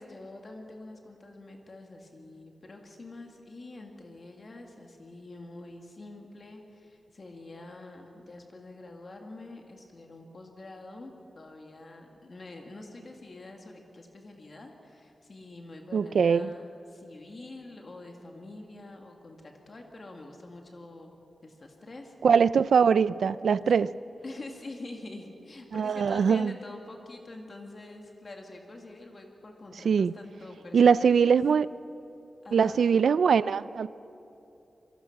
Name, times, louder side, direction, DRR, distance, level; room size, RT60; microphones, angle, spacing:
voice 1, 0.0-21.1 21.4-22.1 24.2-31.4 32.4-32.9, left 2 dB, 35° left, 2 dB, 1.9 m, -46 dB
voice 2, 15.9-16.5 22.2-23.9 25.7-26.5 29.8-30.1 30.7-31.7 32.5-33.9, right 6 dB, 75° right, 17 dB, 0.4 m, -22 dB
26.5 x 23.0 x 5.9 m, 2.9 s
wide cardioid pair, 170°, 0 cm